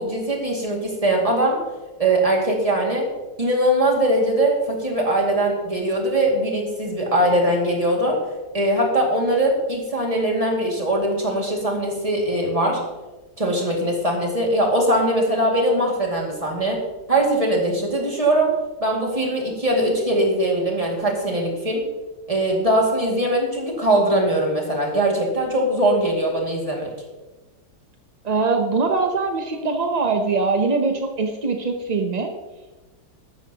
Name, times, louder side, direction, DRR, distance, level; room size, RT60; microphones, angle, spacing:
voice 1, 0.0-1.6 2.0-3.1 3.4-8.2 8.5-12.8 13.4-16.8 17.1-18.5 18.8-21.8 22.3-26.9, right 1 dB, 20° right, -1 dB, 2.3 m, -21 dB
voice 2, 28.2-32.3, right 4 dB, 45° right, 4 dB, 0.5 m, -22 dB
13.5 x 12.5 x 2.9 m, 1.2 s
omnidirectional pair, 2.0 m